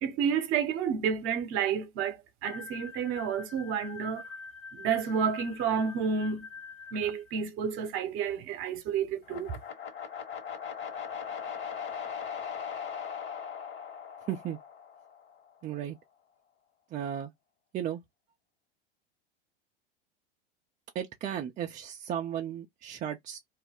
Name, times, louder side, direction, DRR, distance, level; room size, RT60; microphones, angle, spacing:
voice 1, 0.0-4.3 4.7-6.5 6.9-9.5, right 7 dB, 45° right, 0.9 m, -30 dB
sound 1, 2.4-7.3, left 5 dB, 75° left, 0.8 m, -46 dB
sound 2, 9.2-15.4, left 7 dB, 40° left, 1.3 m, -39 dB
voice 2, 14.3-14.6 15.6-16.0 16.9-17.3 17.7-18.0 20.9-23.4, right 10 dB, 25° right, 0.5 m, -35 dB
2.4 x 2.1 x 3.5 m
hypercardioid pair, 95°, 29 cm